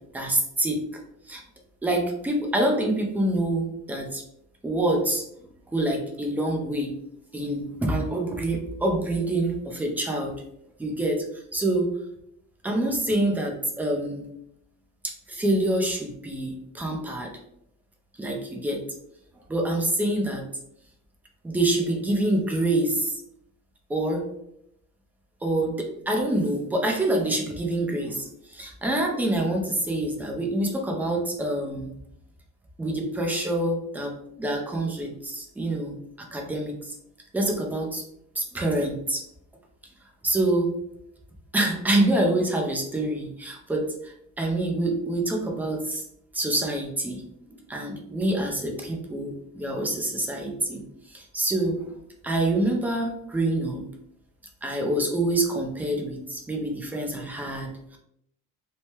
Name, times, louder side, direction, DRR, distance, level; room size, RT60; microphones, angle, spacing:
voice 1, 0.1-0.8 1.3-1.4 1.8-4.2 4.6-5.2 5.7-6.9 7.3-10.4 10.8-11.3 11.5-12.0 12.6-14.3 15.0-17.3 18.2-18.8 19.5-20.5 21.4-23.2 23.9-24.3 25.4-31.9 32.8-36.0 36.3-36.9 37.3-38.0 38.4-39.2 40.2-40.8 41.5-46.0 46.3-50.8 51.1-51.8 52.2-53.8 54.6-58.0, right 1 dB, 5° right, 1 dB, 0.3 m, -26 dB
3.1 x 2.2 x 2.7 m, 0.74 s
cardioid pair, 145°, 35 cm